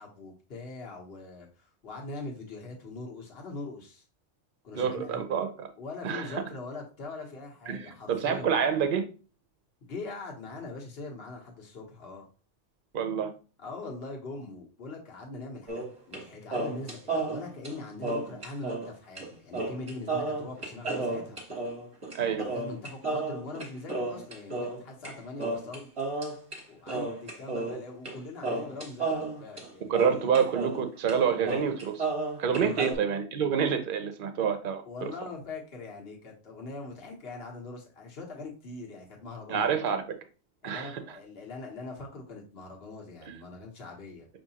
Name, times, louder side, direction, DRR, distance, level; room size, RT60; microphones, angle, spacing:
voice 1, 0.0-4.0 4.6-5.2 5.8-8.5 9.8-12.3 13.6-21.4 22.4-25.9 26.2-26.4 26.7-30.3 32.6-32.9 34.8-39.7 40.6-44.3, left 3 dB, 55° left, 0 dB, 1.3 m, -42 dB
voice 2, 4.7-5.7 6.0-6.4 7.7-9.0 12.9-13.3 22.1-22.4 29.9-32.1 32.4-35.1 39.5-40.2 40.6-40.9, right 7 dB, 50° right, 7 dB, 0.7 m, -28 dB
sound 1, 15.7-16.2 16.5-18.9 19.2-19.3 19.5-25.1 25.4-26.6 26.9-28.2 28.4-30.8 31.1-31.2 31.4-33.0, right 2 dB, 30° right, 1.1 m, -32 dB
6.0 x 2.7 x 2.8 m, 0.35 s
omnidirectional pair, 1.2 m